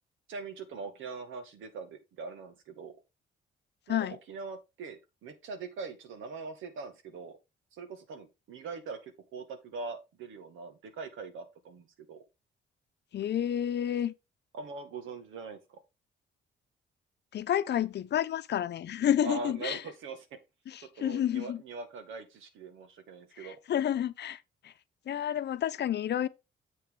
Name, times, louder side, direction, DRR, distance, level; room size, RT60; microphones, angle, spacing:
voice 1, 0.3-2.9 3.9-7.4 7.7-12.2 14.5-15.8 19.2-20.3 20.8-23.6, right 4 dB, 85° right, 2.0 m, -42 dB
voice 2, 13.1-14.1 17.3-19.8 20.7-21.6 23.4-24.4 24.6-24.7 25.1-26.3, left 10 dB, 60° left, 0.8 m, -30 dB
7.8 x 6.7 x 3.8 m
cardioid pair, 90°, 20 cm